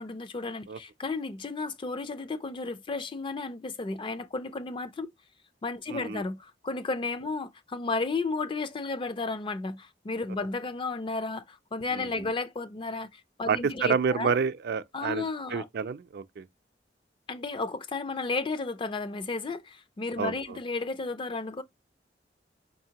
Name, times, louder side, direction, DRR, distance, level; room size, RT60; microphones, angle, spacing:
voice 1, 0.0-5.1 5.6-14.3 14.9-15.7 17.3-21.6, left 3 dB, 30° left, 0.4 m, -33 dB
voice 2, 5.9-6.2 11.9-12.1 13.5-15.2 15.5-16.4 20.2-20.6, right 6 dB, 65° right, 0.4 m, -29 dB
4.9 x 2.7 x 2.8 m
head